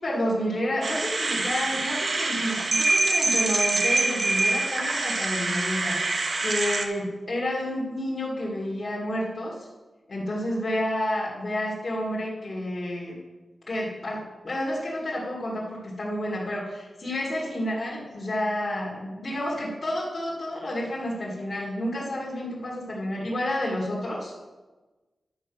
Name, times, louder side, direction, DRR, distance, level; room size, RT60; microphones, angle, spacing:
voice 1, 0.0-9.7 10.1-13.2 13.7-24.4, left 1 dB, 35° left, -6 dB, 2.5 m, -30 dB
sound 1, 0.8-6.8, right 3 dB, 50° right, 1.0 m, -25 dB
11.0 x 6.4 x 5.9 m, 1.2 s
wide cardioid pair, 130°, 0 cm